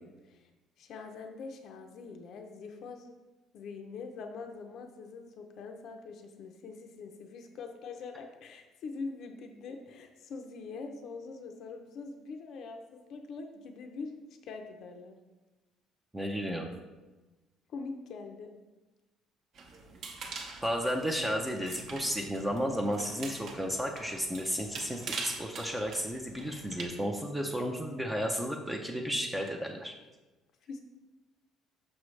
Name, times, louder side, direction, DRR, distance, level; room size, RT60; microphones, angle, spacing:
voice 1, 0.8-3.2 3.5-15.2 17.7-18.5 26.5-26.6 30.7-30.8, left 4 dB, 50° left, 4 dB, 0.5 m, -43 dB
voice 2, 16.1-16.7 20.6-29.9, equal, 5° right, 1 dB, 0.5 m, -33 dB
sound 1, 19.5-26.8, right 4 dB, 45° right, 0.8 m, -44 dB
6.2 x 6.0 x 3.2 m, 1.1 s
cardioid pair, 165°, 0 cm